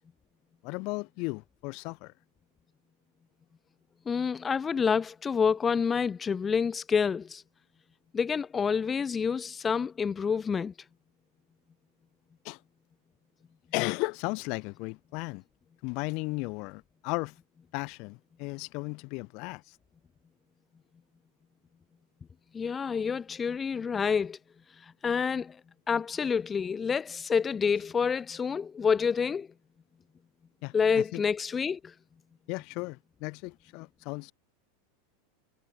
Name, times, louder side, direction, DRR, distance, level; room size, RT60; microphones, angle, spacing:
voice 1, 0.6-2.1 12.4-12.6 13.7-15.4 15.8-17.3 17.7-19.8 30.6-31.2 32.5-34.3, left 29 dB, 50° left, 1.3 m, -35 dB
voice 2, 4.1-7.4 8.1-10.7 22.5-24.4 25.0-25.6 25.9-29.5 30.7-31.9, left 6 dB, 20° left, 0.5 m, -28 dB
supercardioid pair, 130°, 0 cm